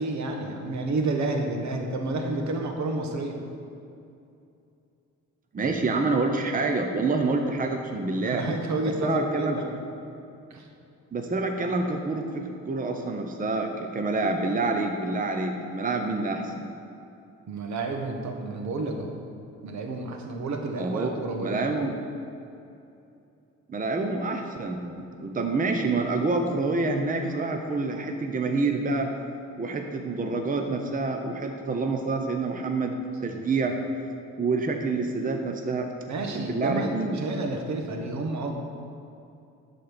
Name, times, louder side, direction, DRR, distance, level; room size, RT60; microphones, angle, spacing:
voice 1, 0.0-3.4 5.6-5.8 8.2-9.8 10.5-10.7 17.5-19.2 19.6-21.6 36.1-38.5, right 2 dB, 70° right, 3 dB, 1.3 m, -30 dB
voice 2, 5.5-8.4 9.0-9.6 11.1-16.7 20.8-21.1 21.4-22.0 23.7-29.1 29.6-33.7 34.4-35.9 36.3-37.2, right 3 dB, 25° right, 4 dB, 0.9 m, -27 dB
11.0 x 4.3 x 6.9 m, 2.6 s
cardioid pair, 90°, 30 cm